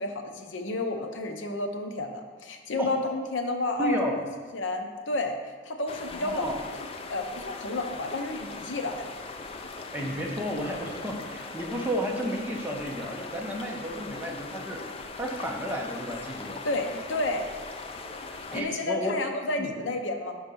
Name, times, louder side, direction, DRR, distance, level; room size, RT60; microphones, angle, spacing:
voice 1, 0.0-4.1 4.5-5.3 5.6-6.5 7.1-9.1 16.6-17.5 18.4-20.3, left 2 dB, 70° left, 4 dB, 0.6 m, -31 dB
voice 2, 3.8-4.2 6.1-6.6 9.9-14.8 15.1-16.6 18.5-19.2 19.6-19.7, equal, 10° right, -1 dB, 0.6 m, -32 dB
sound 1, 5.9-18.6, left 3 dB, 30° left, 0.3 m, -40 dB
4.7 x 4.4 x 5.3 m, 1.5 s
head